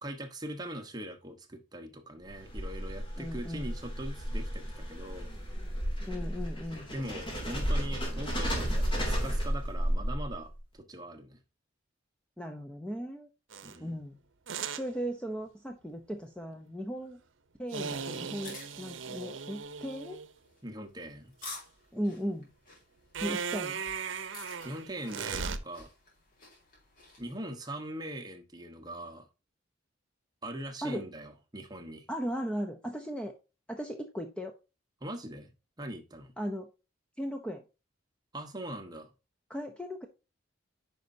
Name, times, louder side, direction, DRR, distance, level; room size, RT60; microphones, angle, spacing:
voice 1, 0.0-5.3 6.9-11.4 13.6-14.0 20.6-21.3 24.6-25.9 27.2-29.3 30.4-32.1 35.0-35.5 35.8-36.3 38.3-39.1, right 1 dB, 20° right, 1.1 m, -41 dB
sound 1, 2.2-10.6, equal, 25° left, 2.6 m, -33 dB
voice 2, 3.2-3.7 6.0-6.9 12.4-13.3 13.8-14.2 14.7-17.2 17.6-20.2 21.9-22.5 23.2-23.8 30.8-31.1 32.1-33.3 33.7-34.6 36.4-36.7 37.2-37.6 39.5-40.1, equal, 5° left, 0.6 m, -37 dB
sound 2, 13.5-13.8 14.5-14.9 17.7-20.3 23.1-25.6, right 6 dB, 75° right, 0.7 m, -37 dB
sound 3, 18.4-27.3, left 3 dB, 45° left, 3.4 m, -51 dB
9.6 x 5.3 x 2.7 m
head